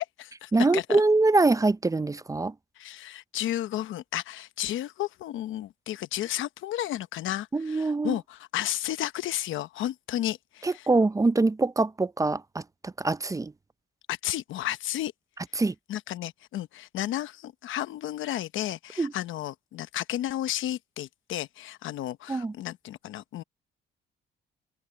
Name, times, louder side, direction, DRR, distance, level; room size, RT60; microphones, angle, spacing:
voice 1, 0.0-0.8 2.8-10.9 14.1-15.1 15.9-23.4, left 13 dB, 80° left, 0.9 m, -33 dB
voice 2, 0.5-2.5 7.5-8.2 10.6-13.5 15.6-15.7 19.0-19.1 22.3-22.5, right 3 dB, 15° right, 0.5 m, -24 dB
open air
cardioid pair, 90°, 20 cm